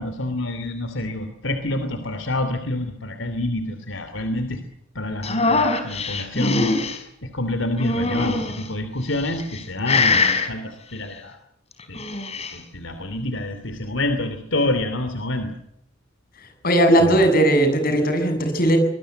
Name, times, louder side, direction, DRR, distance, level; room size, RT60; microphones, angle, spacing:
voice 1, 0.0-4.6 4.9-11.4 11.9-12.2 12.5-15.5 17.0-17.3, left 1 dB, 80° left, 8 dB, 2.9 m, -27 dB
sound 1, 5.2-7.0 7.8-8.6 9.3-9.6 9.9-10.5 11.8-12.5, left 3 dB, 35° left, 4.9 m, -22 dB
voice 2, 16.6-18.8, right 1 dB, 50° left, 7 dB, 7.3 m, -17 dB
25.0 x 21.0 x 7.9 m, 0.72 s
head